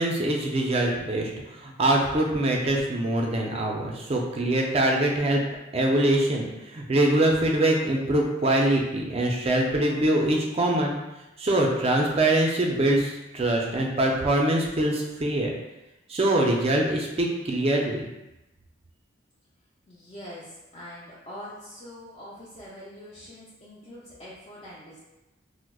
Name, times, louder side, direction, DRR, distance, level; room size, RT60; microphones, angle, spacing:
voice 1, 0.0-5.4 5.7-11.0 11.4-15.5 16.1-18.1, right 1 dB, 30° right, 1 dB, 0.4 m, -24 dB
voice 2, 19.9-25.0, equal, 30° left, -9 dB, 0.5 m, -43 dB
4.6 x 2.0 x 2.2 m, 1.0 s
head